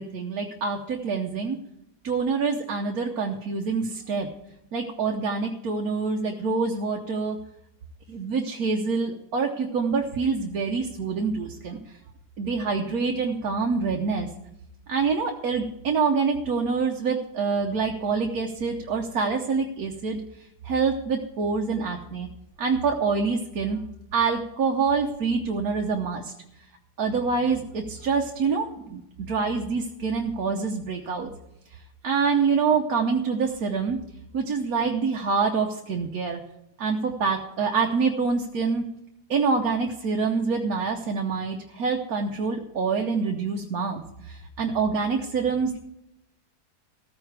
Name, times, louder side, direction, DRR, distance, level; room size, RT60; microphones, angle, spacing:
voice 1, 0.0-1.6 2.0-4.3 4.7-7.4 8.1-11.8 12.4-14.3 14.9-20.2 20.6-22.3 22.6-23.8 24.1-26.3 27.0-31.3 32.0-34.0 34.3-36.4 36.8-38.8 39.3-45.8, right 5 dB, 65° right, 2 dB, 1.3 m, -26 dB
14.5 x 14.0 x 3.4 m, 0.83 s
omnidirectional pair, 1.7 m